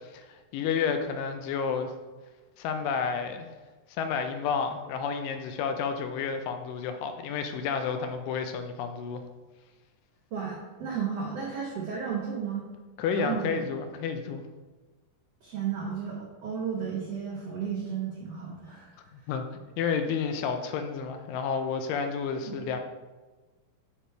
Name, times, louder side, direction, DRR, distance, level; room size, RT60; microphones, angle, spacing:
voice 1, 0.0-1.9 2.6-3.5 4.0-9.2 13.0-14.4 19.1-19.5 19.8-22.8, left 6 dB, 80° left, 7 dB, 2.1 m, -30 dB
voice 2, 10.3-12.6 13.1-13.7 15.4-18.9 22.4-22.6, right 7 dB, 90° right, -3 dB, 1.3 m, -33 dB
7.3 x 3.3 x 4.4 m, 1.3 s
omnidirectional pair, 4.0 m